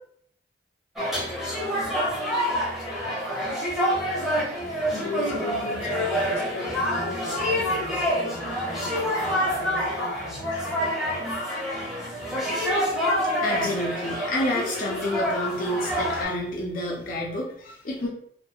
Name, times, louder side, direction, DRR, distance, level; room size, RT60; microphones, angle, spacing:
sound 1, 1.0-16.2, equal, ahead, 0.6 m, -27 dB
voice 1, 4.9-10.9, left 3 dB, 80° left, 1 dB, 0.6 m, -38 dB
voice 2, 13.4-18.1, left 1 dB, 45° left, -3 dB, 0.4 m, -29 dB
2.4 x 2.3 x 2.7 m, 0.67 s
head